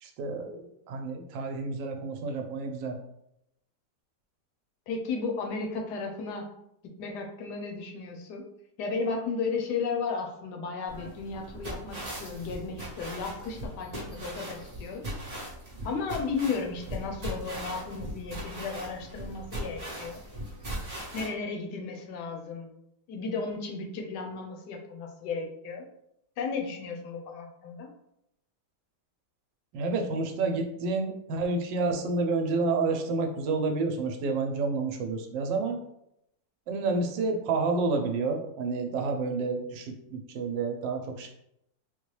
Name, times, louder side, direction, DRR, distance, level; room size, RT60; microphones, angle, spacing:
voice 1, 0.0-3.0 29.7-35.8 36.7-41.3, right 3 dB, 85° right, 4 dB, 1.3 m, -29 dB
voice 2, 4.9-6.5 7.0-8.5 8.8-15.0 15.8-20.2 21.1-22.8 23.1-25.9 26.4-27.9, left 4 dB, 75° left, 3 dB, 1.2 m, -34 dB
sound 1, 10.9-21.3, right 1 dB, 35° right, 0.7 m, -39 dB
3.9 x 2.2 x 3.1 m, 0.80 s
omnidirectional pair, 1.9 m